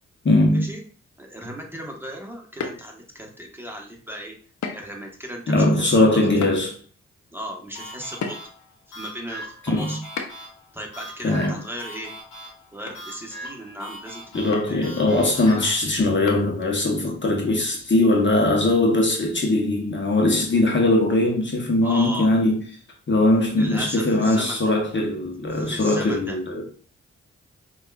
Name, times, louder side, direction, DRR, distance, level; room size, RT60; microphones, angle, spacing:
voice 1, 0.2-0.7 5.5-6.8 9.7-10.0 11.2-11.5 14.3-22.6 23.1-26.6, left 2 dB, 40° left, 0.9 m, -20 dB
voice 2, 1.2-4.4 4.7-6.3 7.3-8.4 8.9-10.0 10.7-12.1 12.7-14.9 15.5-15.6 21.8-22.3 23.6-24.6 25.5-26.4, equal, 5° right, 1.2 m, -36 dB
sound 1, 2.6-3.3 4.6-5.0 5.4-5.5 6.4-6.6 8.2-8.7 10.2-10.6 12.3-12.5 12.9-13.0 13.3-13.4 14.5-14.8 16.3-16.7, left 5 dB, 70° left, 0.7 m, -33 dB
sound 2, 7.7-15.8, equal, 90° left, 1.1 m, -41 dB
5.2 x 2.4 x 2.3 m
supercardioid pair, 45°, 30 cm